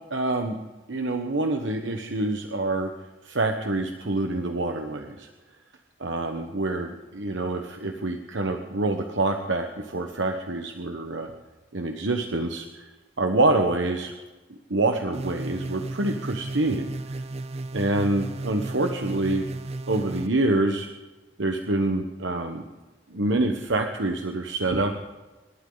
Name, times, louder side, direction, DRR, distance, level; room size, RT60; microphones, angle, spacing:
voice 1, 0.1-0.6 0.9-2.9 3.2-5.3 6.0-11.3 11.7-12.9 13.2-14.1 14.7-17.2 17.7-19.5 19.9-20.9 21.4-22.6 23.1-25.0, right 2 dB, 90° right, 4 dB, 1.2 m, -26 dB
sound 1, 15.1-20.3, right 2 dB, 35° right, 0.6 m, -34 dB
28.5 x 12.0 x 4.0 m, 1.2 s
head